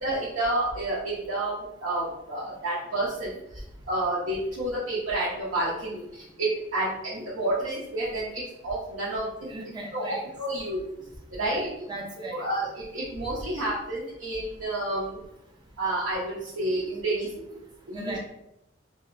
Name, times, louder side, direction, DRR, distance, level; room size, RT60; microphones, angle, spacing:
voice 1, 0.0-9.5 9.9-10.8 11.3-11.7 12.2-15.2 15.8-17.6 17.9-18.2, right 1 dB, 90° right, -8 dB, 0.7 m, -30 dB
voice 2, 9.5-10.2 11.4-11.6 11.9-12.4 17.9-18.2, right 2 dB, 25° right, 1 dB, 0.5 m, -37 dB
2.8 x 2.8 x 2.5 m, 0.83 s
head